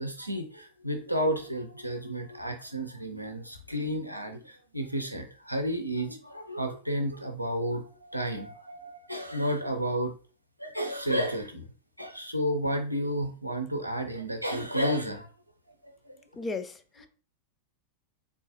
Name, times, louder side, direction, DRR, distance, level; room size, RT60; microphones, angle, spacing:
voice 1, 0.0-10.2 10.6-11.7 12.0-15.3 15.8-16.2, equal, 90° right, 4 dB, 0.5 m, -32 dB
voice 2, 16.3-17.1, left 3 dB, 15° left, 8 dB, 0.4 m, -36 dB
3.6 x 3.0 x 2.7 m, 0.37 s
figure-of-eight pair, 90°, 0 cm